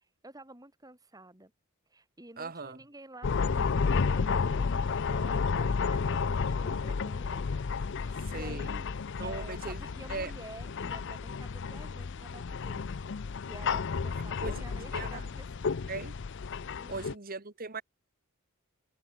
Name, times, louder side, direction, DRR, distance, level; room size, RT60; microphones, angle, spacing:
voice 1, 0.0-1.5 1.9-7.5 7.9-13.1 13.4-16.0 16.8-17.1, right 2 dB, 15° right, 6.1 m, -50 dB
voice 2, 2.4-2.8 8.2-8.8 9.2-9.8 10.1-10.3 14.4-15.3 15.9-16.2 16.9-17.8, right 3 dB, 45° right, 1.7 m, -39 dB
sound 1, 3.2-17.1, left 5 dB, 60° left, 0.5 m, -32 dB
head